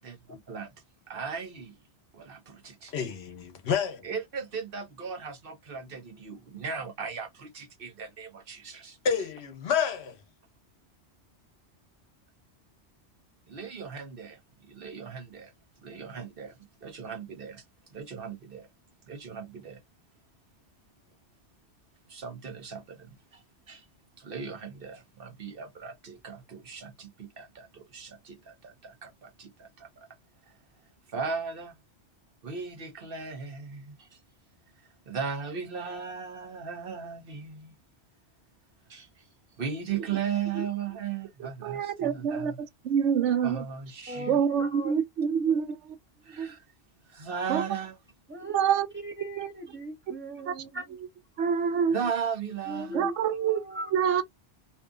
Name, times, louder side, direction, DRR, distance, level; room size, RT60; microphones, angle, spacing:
voice 1, 0.0-0.7 1.1-1.8 2.1-2.9 4.0-9.0 13.5-15.5 15.8-17.6 17.9-18.7 19.1-19.8 22.1-23.8 24.2-30.1 30.5-30.6 31.1-31.7 32.4-34.2 35.1-37.7 38.9-39.3 39.6-42.6 43.4-44.4 46.2-46.6 47.1-48.0 51.9-53.1, right 6 dB, 55° right, 0.9 m, -37 dB
voice 2, 2.9-4.1 9.0-10.2, left 7 dB, 65° left, 1.0 m, -29 dB
voice 3, 41.4-43.6 44.3-46.0 46.3-46.5 47.5-47.6 48.4-48.9 49.4-49.5 50.5-50.6 51.4-52.0 52.9-53.6 53.9-54.2, right 7 dB, 85° right, 0.9 m, -27 dB
voice 4, 44.1-45.0 48.3-51.0 52.7-54.0, right 2 dB, 10° right, 0.8 m, -38 dB
2.7 x 2.4 x 2.4 m
omnidirectional pair, 1.2 m